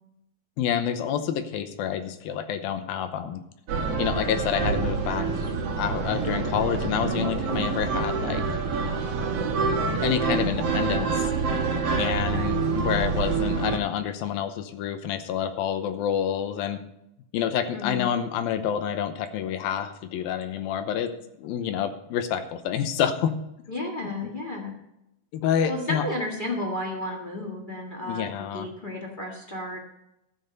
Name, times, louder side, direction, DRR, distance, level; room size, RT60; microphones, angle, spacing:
voice 1, 0.6-3.4 4.0-5.3 5.8-8.4 10.0-11.3 12.0-16.8 17.3-21.1 21.4-23.4 24.0-24.1 25.3-26.1 28.1-28.7, left 9 dB, 85° left, 8 dB, 2.7 m, -28 dB
sound 1, 3.7-13.8, right 4 dB, 55° right, 2.0 m, -26 dB
voice 2, 12.3-12.6 17.7-18.1 23.7-24.8 25.7-29.8, left 1 dB, 55° left, 0 dB, 0.5 m, -33 dB
13.5 x 8.6 x 5.3 m, 0.83 s
omnidirectional pair, 4.2 m